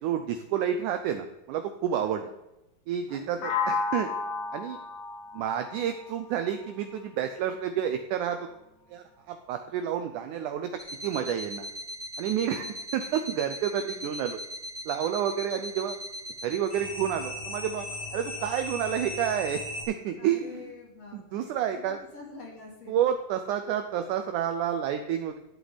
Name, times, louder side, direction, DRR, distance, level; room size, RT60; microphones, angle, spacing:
voice 1, 0.0-2.3 2.9-4.1 4.5-4.8 5.3-8.4 8.9-10.7 11.0-11.7 12.2-12.7 12.9-14.4 14.8-16.0 16.4-17.9 18.1-19.6 19.9-20.5 21.1-22.0 22.9-25.4, right 9 dB, 80° right, 7 dB, 1.8 m, -29 dB
voice 2, 2.0-2.4 3.1-3.6 12.5-13.1 20.2-21.8 22.1-23.0, left 4 dB, 50° left, -1 dB, 2.8 m, -47 dB
sound 1, 3.4-7.3, left 5 dB, 85° left, 3.3 m, -33 dB
sound 2, 10.8-19.8, left 1 dB, 20° left, 2.0 m, -38 dB
11.5 x 8.0 x 4.1 m, 0.95 s
omnidirectional pair, 4.2 m